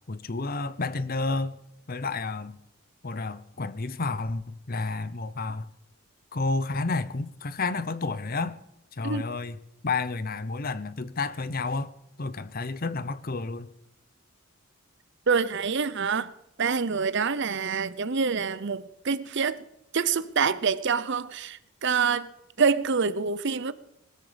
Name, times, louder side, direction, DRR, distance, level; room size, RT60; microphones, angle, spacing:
voice 1, 0.1-1.6 1.9-2.6 3.0-5.7 6.3-8.6 8.9-9.6 9.8-11.9 12.2-13.7, left 3 dB, 45° left, 0.8 m, -30 dB
voice 2, 15.3-16.3 16.6-19.6 19.9-22.3 22.6-23.7, right 5 dB, 55° right, 0.7 m, -26 dB
20.5 x 13.5 x 5.1 m
head